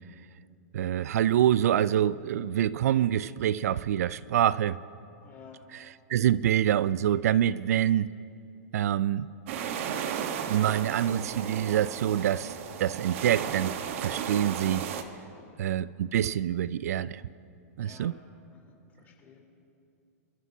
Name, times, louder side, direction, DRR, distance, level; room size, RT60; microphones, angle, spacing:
voice 1, 0.7-4.8 6.1-8.1 8.7-9.3 10.5-12.5 12.8-14.9 15.6-17.2 17.8-18.1, right 11 dB, 75° right, 0.4 m, -26 dB
voice 2, 5.2-5.7 15.3-15.6 17.8-18.1 18.5-19.4, left 7 dB, 20° left, 3.6 m, -54 dB
sound 1, 9.5-15.0, right 8 dB, 55° right, 1.2 m, -34 dB
28.0 x 13.5 x 2.8 m
hypercardioid pair, 140°, 8 cm